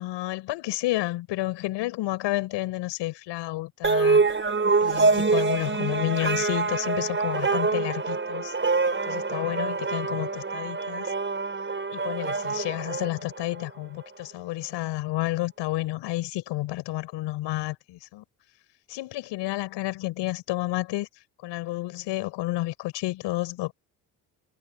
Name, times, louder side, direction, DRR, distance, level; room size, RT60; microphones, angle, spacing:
voice 1, 0.0-4.3 4.8-8.5 9.1-11.1 11.9-18.2 18.9-21.1 21.4-23.7, left 17 dB, 75° left, 6.5 m, -30 dB
sound 1, 3.8-13.6, right 4 dB, 25° right, 4.9 m, -25 dB
hypercardioid pair, 55°, 44 cm